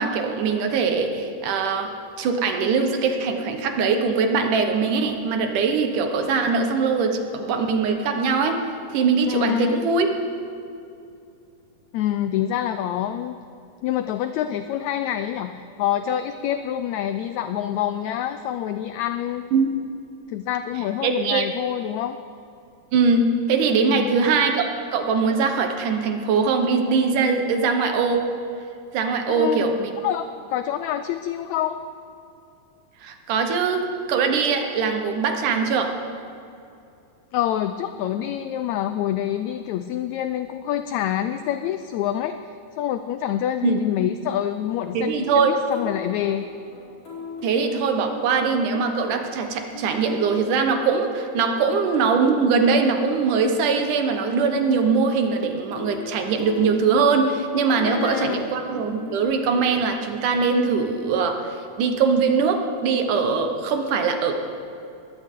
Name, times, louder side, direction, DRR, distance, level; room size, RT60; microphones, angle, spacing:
voice 1, 0.0-1.9 2.2-10.1 19.5-19.7 21.0-21.5 22.9-28.3 28.9-29.9 33.0-35.9 43.6-43.7 44.9-45.5 47.4-64.3, right 5 dB, 75° right, 5 dB, 2.6 m, -22 dB
voice 2, 9.3-9.9 11.9-13.4 13.8-19.4 20.3-22.2 23.9-24.3 29.3-29.7 30.0-31.8 37.3-46.5 57.8-58.4, left 11 dB, 85° left, 10 dB, 1.6 m, -26 dB
sound 1, 45.1-59.2, left 3 dB, 45° left, 4.7 m, -39 dB
21.0 x 16.0 x 3.7 m, 2.6 s
omnidirectional pair, 3.8 m